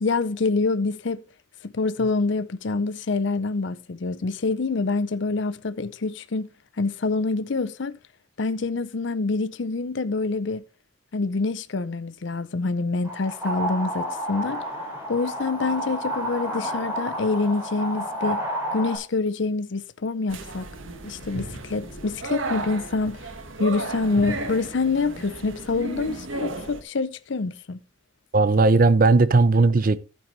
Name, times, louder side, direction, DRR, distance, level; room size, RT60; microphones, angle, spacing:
voice 1, 0.0-1.2 1.6-6.5 6.8-8.0 8.4-10.6 11.1-14.6 15.1-18.4 18.7-20.7 21.0-23.2 23.6-27.8, left 3 dB, 60° left, 0.6 m, -26 dB
sound 1, 13.0-19.0, equal, 10° right, 6.0 m, -30 dB
sound 2, 20.3-26.8, right 2 dB, 75° right, 1.6 m, -34 dB
voice 2, 28.3-30.0, right 3 dB, 45° right, 0.5 m, -17 dB
12.5 x 8.9 x 3.2 m
head